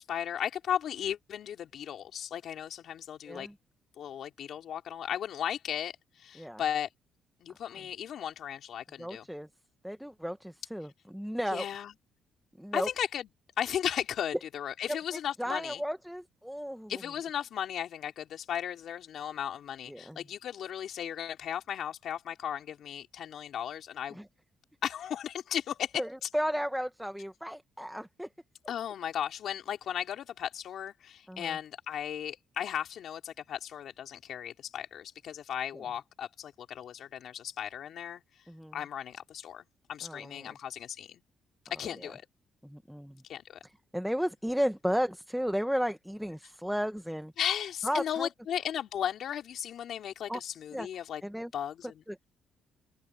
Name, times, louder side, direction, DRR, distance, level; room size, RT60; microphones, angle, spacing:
voice 1, 0.0-3.5 4.0-5.9 6.2-6.9 7.4-9.3 11.5-11.9 12.7-13.3 13.6-15.8 16.9-24.2 24.8-25.9 28.7-38.2 38.7-41.2 41.7-42.3 43.3-43.6 47.4-51.2 51.5-51.9, left 9 dB, 70° left, 3.6 m, -36 dB
voice 2, 9.0-9.5 9.8-11.7 12.6-12.9 14.9-17.0 19.9-20.2 24.1-24.3 25.9-28.3 31.3-31.6 35.7-35.9 38.5-38.7 40.0-40.6 41.8-42.1 42.6-43.2 43.6-47.3 47.8-48.3 50.3-50.4 50.7-50.9 51.2-51.5 52.1-52.2, equal, ahead, 1.2 m, -34 dB
cardioid pair, 90°, 0 cm